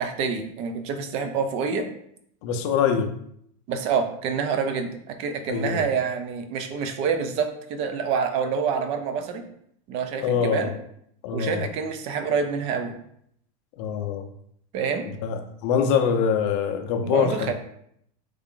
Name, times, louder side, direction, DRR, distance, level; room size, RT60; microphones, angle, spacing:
voice 1, 0.0-1.9 3.7-9.4 9.9-10.7 11.3-12.9 14.7-15.1 17.0-17.5, right 6 dB, 30° right, 7 dB, 0.3 m, -27 dB
voice 2, 2.4-3.1 5.5-5.9 10.2-10.7 11.2-11.7 13.8-14.3 15.2-17.5, left 7 dB, 50° left, 6 dB, 0.5 m, -24 dB
3.2 x 2.4 x 3.6 m, 0.71 s
supercardioid pair, 165°, 20 cm